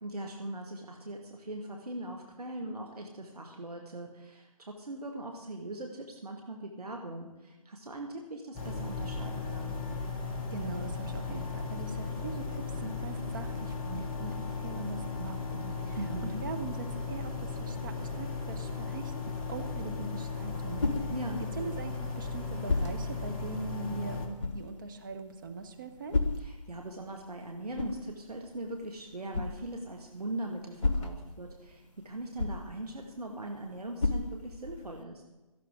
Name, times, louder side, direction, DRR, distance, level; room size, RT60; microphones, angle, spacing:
voice 1, 0.0-9.8 16.0-16.4 21.1-21.4 26.4-35.2, right 1 dB, 70° right, 2 dB, 2.1 m, -40 dB
sound 1, 8.5-24.3, left 4 dB, 15° left, 1.3 m, -36 dB
voice 2, 10.5-20.8 21.6-26.2, right 4 dB, 30° right, 6 dB, 1.3 m, -41 dB
sound 2, 20.1-35.0, left 3 dB, 50° left, 1.4 m, -37 dB
17.5 x 13.5 x 3.8 m, 1.1 s
figure-of-eight pair, 155°, 20 cm